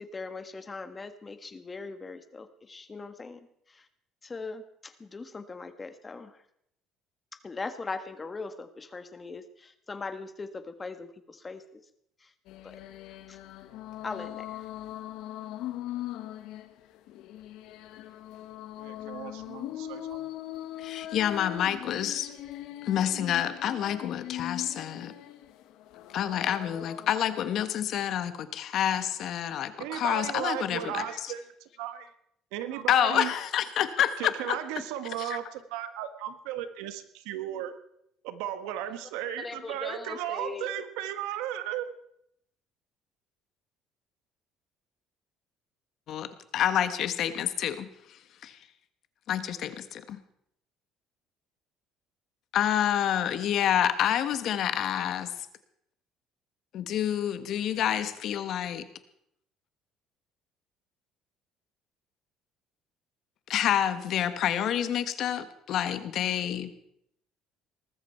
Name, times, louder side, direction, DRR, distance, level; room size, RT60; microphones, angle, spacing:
voice 1, 0.0-3.4 3.7-3.8 4.2-6.3 7.4-11.8 12.6-12.8 13.3-13.4 14.0-14.5 39.4-40.8, left 4 dB, 25° left, 9 dB, 1.5 m, -40 dB
sound 1, 12.5-27.5, left 13 dB, 75° left, 1.4 m, -40 dB
voice 2, 18.8-20.3 29.8-32.1 32.5-33.3 34.2-37.8 38.2-42.0, right 11 dB, 90° right, 10 dB, 1.4 m, -35 dB
voice 3, 20.8-22.3 22.8-25.1 26.1-31.3 32.9-34.6 35.2-35.4 46.1-48.6 49.3-50.2 52.5-55.5 56.7-58.9 63.5-66.7, left 10 dB, 60° left, 11 dB, 1.4 m, -28 dB
19.5 x 13.5 x 4.6 m, 0.74 s
cardioid pair, 110°, 0 cm